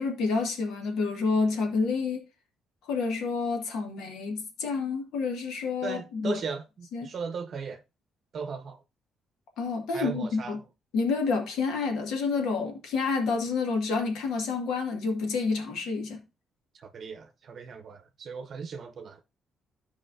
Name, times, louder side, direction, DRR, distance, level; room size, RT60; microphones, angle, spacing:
voice 1, 0.0-2.2 2.9-6.4 6.9-7.1 9.6-10.6 10.9-16.2, left 4 dB, 85° left, 1.8 m, -29 dB
voice 2, 5.8-7.8 8.3-8.8 9.9-10.6 16.7-19.2, right 5 dB, 55° right, 0.7 m, -37 dB
13.5 x 4.8 x 2.6 m
cardioid pair, 90°, 0 cm